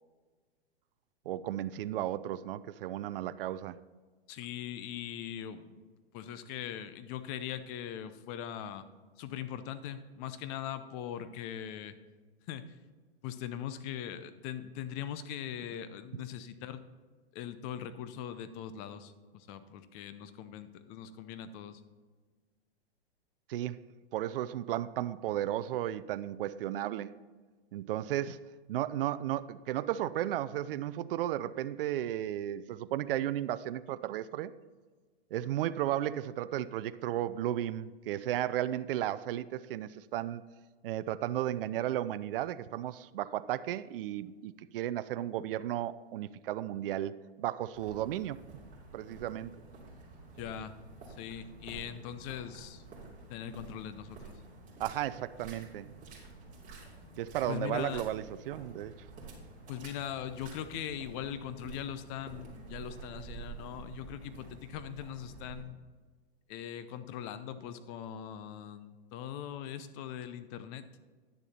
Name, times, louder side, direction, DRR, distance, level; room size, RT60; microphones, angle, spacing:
voice 1, 1.3-3.8 23.5-23.8 24.1-27.2 27.7-28.4 28.7-34.5 35.3-40.4 40.8-48.4 48.9-49.5 54.8-55.9 57.2-58.9, right 12 dB, 60° right, 14 dB, 0.5 m, -34 dB
voice 2, 4.3-5.9 6.1-8.8 9.2-11.9 12.5-12.7 13.2-16.8 17.3-21.8 50.4-50.7 51.1-53.0 53.3-54.4 57.5-58.0 59.7-65.8 66.5-70.8, left 9 dB, 30° left, 12 dB, 0.7 m, -41 dB
sound 1, 47.7-65.6, right 4 dB, 25° right, 2.8 m, -50 dB
10.0 x 7.0 x 4.3 m, 1.4 s
hypercardioid pair, 130°, 32 cm